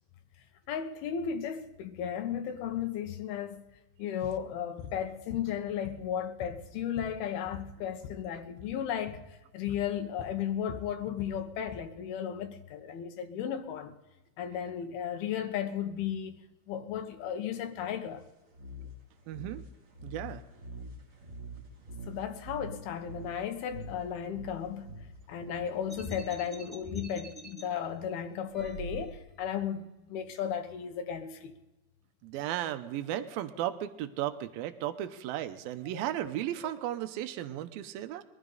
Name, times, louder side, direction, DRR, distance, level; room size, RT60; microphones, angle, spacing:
voice 1, 0.7-3.6 4.0-14.0 14.4-16.3 16.7-18.2 22.1-24.9 25.3-31.5, left 9 dB, 80° left, 3.1 m, -35 dB
sound 1, 4.2-4.4 4.8-5.0 5.3-6.1 6.4-8.2 8.5-8.8 9.1-9.3 9.7-9.9 10.2-11.9, left 6 dB, 65° left, 1.9 m, -44 dB
sound 2, 18.5-26.5, right 1 dB, 40° right, 3.3 m, -46 dB
voice 2, 19.3-19.6 20.0-20.4 32.2-38.2, right 12 dB, 80° right, 2.6 m, -35 dB
sound 3, 25.9-27.6 28.5-29.5, equal, ahead, 1.3 m, -42 dB
22.5 x 13.5 x 4.0 m
omnidirectional pair, 4.3 m